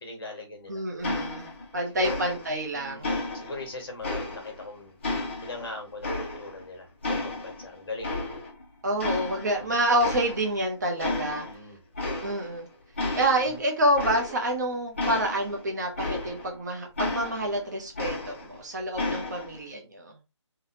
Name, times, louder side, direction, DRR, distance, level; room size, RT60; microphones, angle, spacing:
voice 1, 0.0-0.8 1.9-2.2 2.7-4.9 5.4-8.2 9.5-9.8 11.4-11.8 13.4-13.6, left 3 dB, 50° left, 2 dB, 1.3 m, -40 dB
voice 2, 0.7-3.1 8.8-11.5 12.2-12.7 13.1-20.2, right 1 dB, 35° right, 2 dB, 0.8 m, -28 dB
sound 1, 1.0-1.7 2.0-2.7 3.0-4.7 5.0-6.7 7.0-8.6 9.0-9.7 10.0-10.6 11.0-11.6 11.9-12.6 13.0-16.6 17.0-18.6 19.0-19.6, left 2 dB, 25° left, 0.6 m, -33 dB
3.4 x 2.3 x 2.7 m, 0.26 s
figure-of-eight pair, 160°, 16 cm